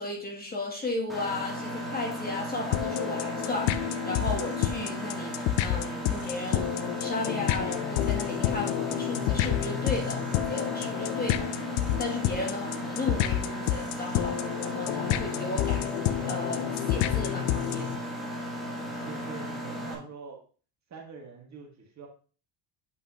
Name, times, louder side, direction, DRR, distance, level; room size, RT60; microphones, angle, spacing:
voice 1, 0.0-6.7 7.0-11.5 12.0-17.9, left 2 dB, 20° left, 0 dB, 1.6 m, -35 dB
Mechanisms, 1.1-19.9, equal, ahead, 1.6 m, -36 dB
sound 1, 2.7-18.0, left 12 dB, 90° left, 0.6 m, -29 dB
voice 2, 18.7-20.4 20.9-22.1, right 5 dB, 40° right, 1 dB, 1.8 m, -44 dB
8.2 x 5.2 x 2.9 m, 0.38 s
cardioid pair, 145°, 44 cm